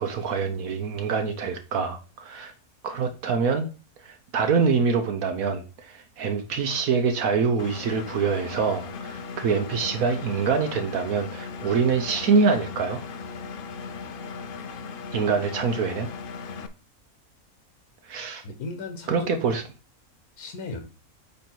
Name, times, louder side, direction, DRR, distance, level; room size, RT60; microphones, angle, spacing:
voice 1, 0.0-2.5 2.8-3.7 4.0-13.0 15.1-16.1 18.0-18.4 19.1-19.6, right 5 dB, 75° right, 1.3 m, -25 dB
Engine, 7.6-16.7, left 5 dB, 50° left, 0.7 m, -37 dB
voice 2, 18.4-19.5 20.4-20.8, left 3 dB, 85° left, 1.6 m, -36 dB
8.5 x 3.3 x 4.5 m
omnidirectional pair, 1.5 m